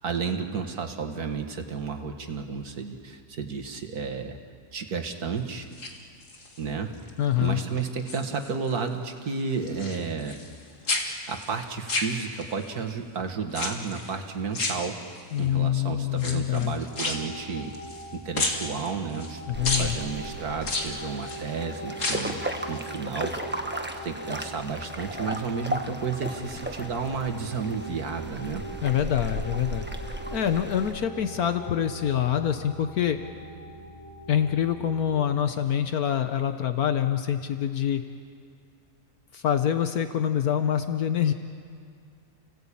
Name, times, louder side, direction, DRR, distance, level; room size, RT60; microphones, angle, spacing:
voice 1, 0.0-4.4 4.7-5.7 6.6-6.9 7.4-10.4 10.9-15.0 15.4-17.8 18.1-19.4 19.8-23.4 23.6-28.6, right 5 dB, 75° right, 5 dB, 2.1 m, -32 dB
sound 1, 5.6-6.6 7.1-7.5 7.8-8.8 9.1-10.6 10.9-12.6 13.5-14.1 14.5-15.4 16.1-18.1 18.3-19.3 19.6-19.9 20.6-21.4 21.9-22.4 22.7-22.8, left 2 dB, 55° left, 2.6 m, -31 dB
voice 2, 7.2-7.6 15.3-16.8 19.5-20.0 28.8-33.2 34.3-38.0 39.3-41.3, left 9 dB, 70° left, 8 dB, 1.4 m, -25 dB
sound 2, 16.9-35.2, right 1 dB, 20° left, 7.1 m, -42 dB
sound 3, 19.5-30.9, right 1 dB, 5° right, 1.2 m, -36 dB
30.0 x 17.5 x 8.6 m, 2.2 s
omnidirectional pair, 1.6 m